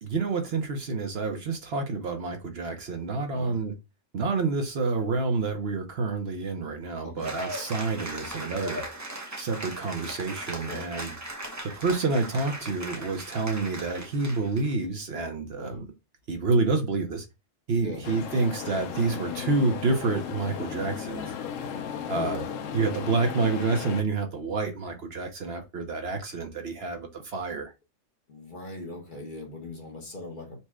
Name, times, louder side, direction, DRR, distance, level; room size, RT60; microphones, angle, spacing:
voice 1, 0.0-3.7 4.1-8.8 9.4-11.1 11.6-15.9 16.3-17.2 17.7-21.2 22.1-22.4 22.7-27.7, right 3 dB, 60° right, 0.9 m, -28 dB
voice 2, 7.0-7.4 10.6-10.9 15.6-15.8 17.8-18.1 22.0-22.5 28.3-30.6, left 2 dB, 45° left, 1.0 m, -39 dB
Cheering / Applause, 7.2-14.7, right 1 dB, 20° right, 0.6 m, -38 dB
sound 1, 18.0-24.0, left 7 dB, 80° left, 1.0 m, -35 dB
4.3 x 2.1 x 4.6 m
omnidirectional pair, 1.3 m